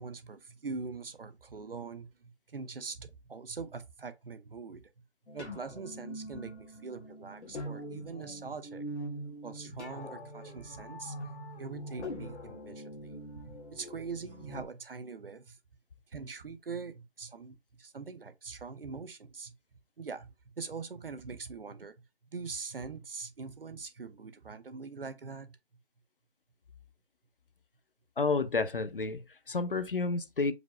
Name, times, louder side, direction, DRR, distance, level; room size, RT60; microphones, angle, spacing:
voice 1, 0.0-4.9 5.3-8.8 9.4-11.3 11.6-13.2 13.5-15.6 16.1-19.5 20.0-21.9 22.3-25.6, right 4 dB, 55° right, 0.7 m, -43 dB
sound 1, 5.3-14.6, equal, 85° left, 1.6 m, -43 dB
voice 2, 28.2-30.5, left 3 dB, 55° left, 0.5 m, -30 dB
5.1 x 2.1 x 4.7 m
figure-of-eight pair, 180°, 33 cm